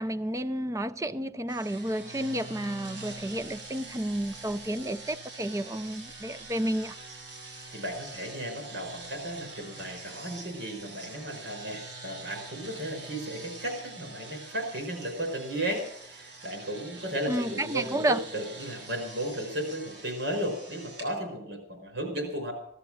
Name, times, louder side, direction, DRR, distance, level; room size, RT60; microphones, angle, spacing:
voice 1, 0.0-7.0 17.3-18.2, right 1 dB, 15° right, 0.5 m, -31 dB
sound 1, 1.5-21.1, right 3 dB, 90° right, 7.5 m, -45 dB
voice 2, 7.7-22.5, right 1 dB, 70° right, 5.0 m, -35 dB
15.5 x 13.0 x 6.2 m
head